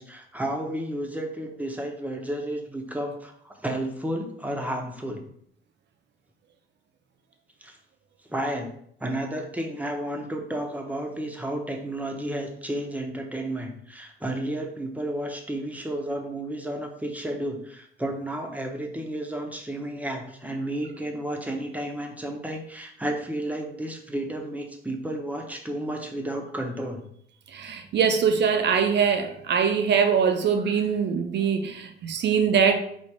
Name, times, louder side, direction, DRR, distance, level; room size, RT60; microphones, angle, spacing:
voice 1, 0.0-5.2 7.6-7.8 8.3-8.7 9.0-27.1, right 1 dB, 5° right, 2 dB, 0.9 m, -32 dB
voice 2, 27.5-32.8, right 6 dB, 60° right, 6 dB, 0.7 m, -23 dB
4.2 x 2.5 x 4.7 m, 0.68 s
cardioid pair, 90°, 20 cm